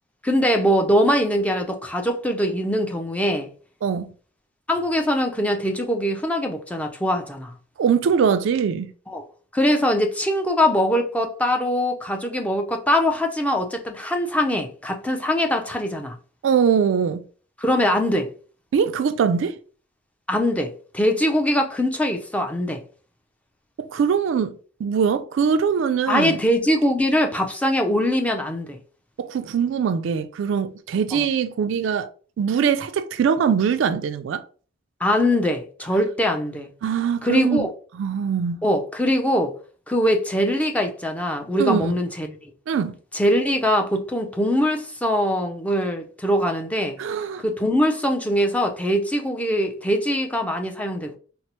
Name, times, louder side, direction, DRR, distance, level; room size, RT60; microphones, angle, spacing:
voice 1, 0.2-3.5 4.7-7.5 9.1-9.2 9.5-16.2 17.6-18.3 20.3-22.8 26.1-28.8 31.1-31.3 35.0-36.7 37.2-37.7 38.6-39.5 39.9-42.3 43.1-47.0 47.4-51.2, equal, 5° left, 0.4 m, -22 dB
voice 2, 3.8-4.1 7.8-8.9 16.4-17.2 18.7-19.6 23.8-26.4 29.2-32.1 32.4-34.4 36.8-37.7 37.9-38.6 41.6-41.9 42.7-43.0 47.0-47.4, right 7 dB, 70° right, 0.3 m, -22 dB
4.2 x 2.0 x 2.8 m
head